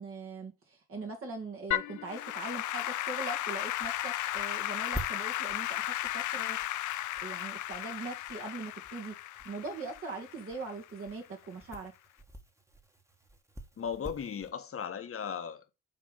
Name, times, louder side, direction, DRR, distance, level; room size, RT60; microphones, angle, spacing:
voice 1, 0.0-6.6 7.2-9.2 9.4-11.9, right 3 dB, 45° right, 2.4 m, -41 dB
Applause / Keyboard (musical), 1.7-11.0, left 14 dB, 75° left, 0.7 m, -35 dB
sound 1, 3.5-14.5, right 1 dB, 10° right, 1.7 m, -48 dB
voice 2, 13.8-15.7, left 7 dB, 45° left, 1.5 m, -37 dB
9.2 x 3.6 x 5.5 m
cardioid pair, 90°, 30 cm